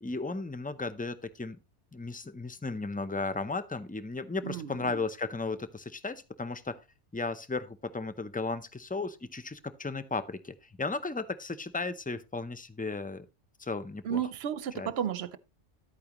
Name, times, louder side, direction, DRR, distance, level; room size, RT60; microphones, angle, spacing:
voice 1, 0.0-1.6 1.9-6.8 7.1-13.3 13.6-14.2 14.7-14.9, left 3 dB, 10° left, 0.4 m, -35 dB
voice 2, 4.4-5.0 14.0-15.4, right 9 dB, 65° right, 0.9 m, -33 dB
11.5 x 8.7 x 3.0 m
omnidirectional pair, 1.1 m